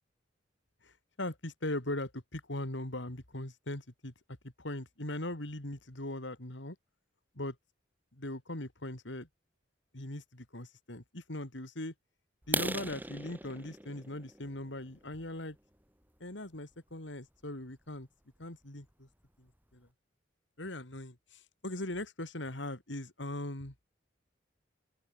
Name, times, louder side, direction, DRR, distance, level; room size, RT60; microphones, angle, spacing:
voice 1, 0.8-4.1 4.6-6.8 7.3-7.6 8.1-9.3 9.9-11.9 12.5-15.6 16.2-18.1 18.4-19.1 19.4-19.9 20.6-23.7, left 1 dB, 70° left, 3.4 m, -40 dB
sound 1, 12.4-16.2 16.7-16.9 17.4-17.5 17.9-18.0 18.4-18.5 18.9-19.0 19.2-19.7, right 2 dB, 10° right, 3.6 m, -39 dB
open air
head